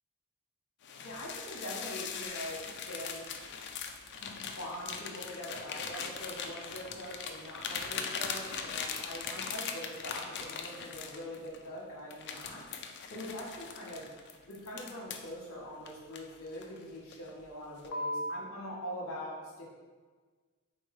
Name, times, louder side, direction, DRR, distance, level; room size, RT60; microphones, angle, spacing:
sound 1, 0.8-11.6 12.1-15.3 15.9-16.8 17.1-17.4 17.8-18.4, left 5 dB, 50° left, 0.3 m, -40 dB
voice 1, 1.0-3.3 4.2-12.6 13.1-14.1 14.5-19.7, equal, 70° left, -4 dB, 1.2 m, -43 dB
3.5 x 3.2 x 4.2 m, 1.4 s
head